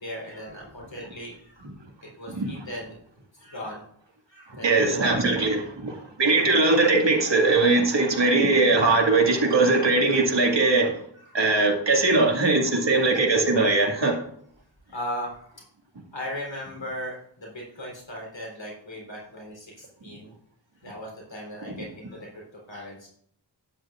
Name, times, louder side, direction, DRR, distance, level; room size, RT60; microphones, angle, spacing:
voice 1, 0.0-1.7 2.2-3.0 3.4-3.8 4.3-5.2 6.2-6.6 11.2-11.4 13.0-13.1 14.9-15.5 16.1-20.3 20.8-22.3 22.7-23.1, equal, 85° left, -2 dB, 3.9 m, -37 dB
voice 2, 4.6-10.9 11.3-14.2, right 3 dB, 75° right, 1 dB, 2.0 m, -21 dB
12.0 x 9.7 x 2.5 m, 0.66 s
wide cardioid pair, 50°, 44 cm